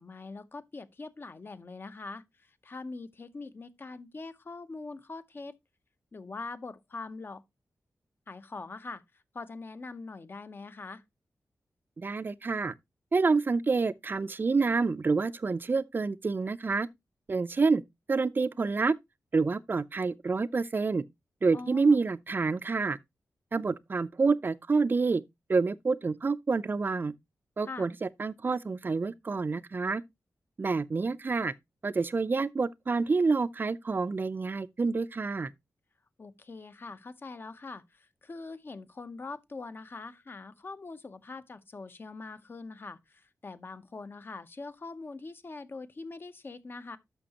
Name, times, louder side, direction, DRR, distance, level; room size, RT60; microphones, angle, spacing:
voice 1, 0.0-5.5 6.1-7.4 8.3-11.0 21.5-22.0 27.6-27.9 36.2-47.0, left 3 dB, 40° left, 0.8 m, -43 dB
voice 2, 12.0-12.7 13.1-16.9 17.3-17.8 18.1-18.9 19.3-21.0 21.4-23.0 23.5-25.2 25.5-27.1 27.6-30.0 30.6-31.5 31.8-35.5, right 4 dB, 35° right, 0.5 m, -28 dB
11.0 x 6.4 x 2.9 m
wide cardioid pair, 130°, 6 cm